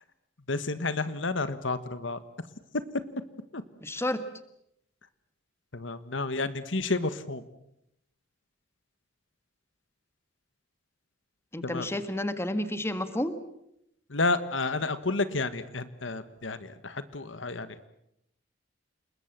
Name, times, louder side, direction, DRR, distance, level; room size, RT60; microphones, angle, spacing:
voice 1, 0.5-2.2 3.5-3.6 5.7-7.4 11.6-11.9 14.1-16.6 16.8-17.7, left 3 dB, 80° left, 13 dB, 1.5 m, -30 dB
voice 2, 3.8-4.2 11.5-13.4, left 1 dB, 15° left, 10 dB, 1.7 m, -30 dB
29.0 x 21.0 x 7.5 m, 0.78 s
head